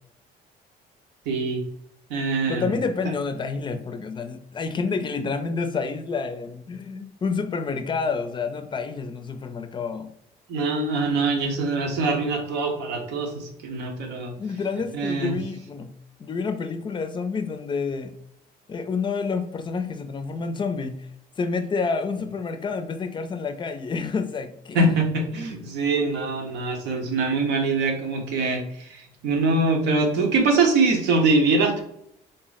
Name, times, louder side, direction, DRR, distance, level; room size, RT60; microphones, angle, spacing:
voice 1, 1.3-1.6 2.1-2.8 10.5-14.3 14.9-15.3 24.7-31.8, right 3 dB, 90° right, 3 dB, 0.9 m, -23 dB
voice 2, 2.5-10.1 14.4-15.9 16.2-18.1 18.7-21.1 21.4-24.9, left 4 dB, 30° left, 7 dB, 0.4 m, -28 dB
3.7 x 2.0 x 3.9 m, 0.73 s
cardioid pair, 110°, 17 cm